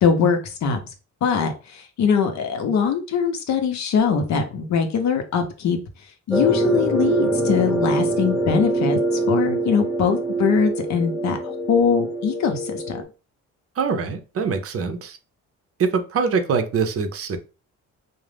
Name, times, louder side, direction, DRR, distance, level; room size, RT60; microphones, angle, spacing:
voice 1, 0.0-0.8 1.2-5.8 6.3-9.0 9.3-11.4 11.7-13.0, left 6 dB, 65° left, 6 dB, 0.7 m, -22 dB
sound 1, 6.3-13.0, right 2 dB, 5° right, 0.6 m, -24 dB
voice 2, 13.8-15.2 15.8-17.4, right 5 dB, 50° right, 8 dB, 0.6 m, -23 dB
2.4 x 2.0 x 3.3 m, 0.32 s
cardioid pair, 90°, 30 cm